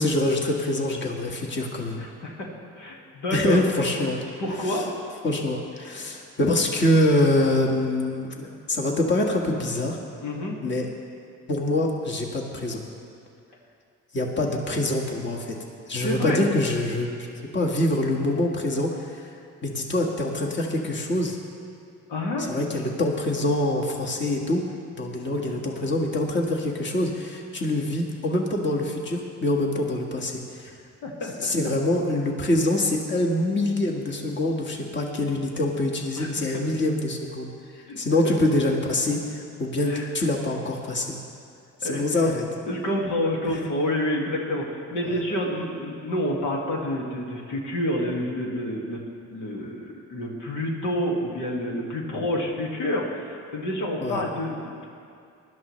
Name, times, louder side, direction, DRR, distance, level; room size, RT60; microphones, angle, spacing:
voice 1, 0.0-2.0 3.3-4.2 4.5-4.8 5.2-10.0 10.6-10.9 11.5-12.8 14.1-15.6 15.9-17.3 17.5-19.3 19.6-21.4 22.4-24.6 24.9-30.7 31.4-41.2 41.8-42.5 43.4-43.6 45.1-45.2 54.0-54.2, left 1 dB, 40° left, -1 dB, 1.7 m, -25 dB
voice 2, 2.0-2.5 2.8-3.7 4.4-4.8 10.2-10.6 16.0-16.5 22.1-22.5 31.0-31.3 36.2-36.3 37.9-38.0 38.2-38.3 39.9-40.1 41.8-42.3 42.7-49.0 49.3-54.9, left 1 dB, 85° left, -1 dB, 2.0 m, -28 dB
19.5 x 12.0 x 3.2 m, 2.4 s
cardioid pair, 90°, 30 cm